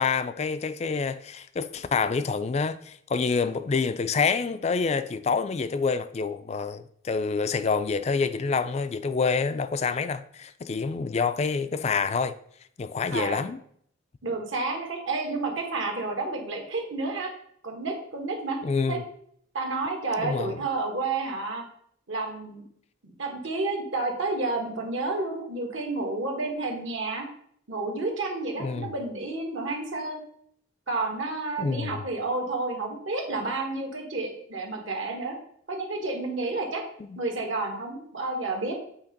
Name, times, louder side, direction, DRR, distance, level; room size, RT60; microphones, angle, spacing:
voice 1, 0.0-12.4 12.8-13.6 18.6-19.0 20.2-20.6 28.6-28.9 31.6-32.0 37.0-37.2, left 5 dB, 30° left, 0.3 m, -27 dB
voice 2, 13.1-13.5 14.2-17.3 17.6-18.6 18.9-19.0 19.5-21.6 22.1-22.6 23.0-27.3 27.7-30.2 30.9-35.3 35.7-36.8 37.2-38.7, right 3 dB, 70° right, 1.5 m, -30 dB
8.4 x 2.9 x 5.1 m
head